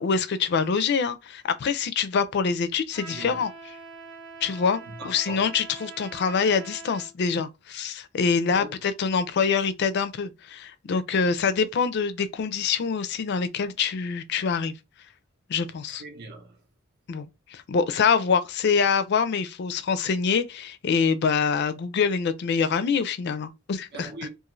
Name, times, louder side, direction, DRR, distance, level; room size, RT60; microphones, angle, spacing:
voice 1, 0.0-3.5 4.4-14.7 15.5-16.0 17.1-24.1, left 5 dB, 55° left, 0.4 m, -25 dB
Trumpet, 2.9-7.1, right 4 dB, 85° right, 1.0 m, -43 dB
voice 2, 3.1-3.4 4.9-5.5 8.5-8.7 16.0-16.6 23.9-24.3, right 2 dB, 55° right, 0.7 m, -40 dB
2.5 x 2.4 x 3.0 m
head